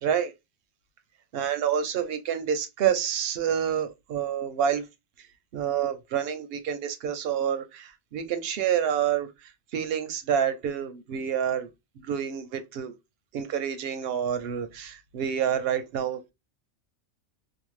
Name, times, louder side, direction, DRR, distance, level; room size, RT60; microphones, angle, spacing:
voice 1, 0.0-0.3 1.3-4.8 5.5-11.7 12.0-12.9 13.3-16.2, right 8 dB, 65° right, 0.7 m, -28 dB
2.7 x 2.1 x 3.0 m
omnidirectional pair, 1.3 m